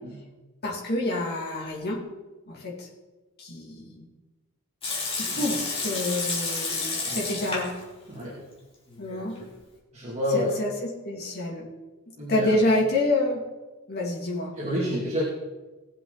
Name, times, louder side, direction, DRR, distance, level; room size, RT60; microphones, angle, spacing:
voice 1, 0.6-2.0 2.5-2.9 3.4-4.1 5.1-7.7 9.0-9.3 10.3-11.6 12.3-13.4 13.9-14.5, left 1 dB, 50° left, -3 dB, 3.0 m, -28 dB
Water tap faucet / Sink (filling or washing) / Liquid, 4.8-7.8 8.1-8.2 8.9-9.5, left 3 dB, 25° left, 3.3 m, -31 dB
voice 2, 8.1-8.4 9.9-10.6 12.2-12.6 14.6-15.2, left 1 dB, 30° right, -5 dB, 2.8 m, -29 dB
19.5 x 7.6 x 4.2 m, 1.2 s
head